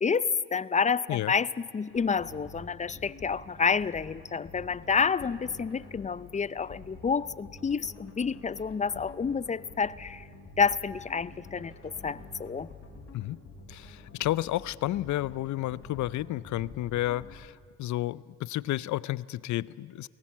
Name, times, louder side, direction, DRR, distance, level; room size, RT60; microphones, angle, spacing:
voice 1, 0.0-10.3 10.6-12.7, left 5 dB, 25° left, 19 dB, 0.5 m, -29 dB
sound 1, 1.9-17.3, left 2 dB, 50° left, 4.7 m, -48 dB
voice 2, 13.7-17.5 17.8-20.1, left 15 dB, 70° left, 20 dB, 0.6 m, -31 dB
22.5 x 18.0 x 7.3 m, 2.5 s
cardioid pair, 90°, 30 cm